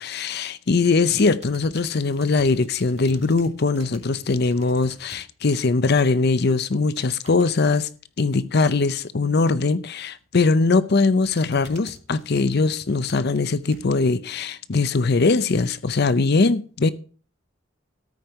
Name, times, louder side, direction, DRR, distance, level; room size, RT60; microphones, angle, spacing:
voice 1, 0.0-7.9 8.2-16.9, left 3 dB, 55° left, 0.6 m, -21 dB
sound 1, 1.1-5.2 5.6-6.0 6.8-7.8 10.2-10.5 10.9-14.1 14.6-14.7, right 2 dB, 35° right, 2.5 m, -48 dB
13.5 x 5.3 x 7.7 m
head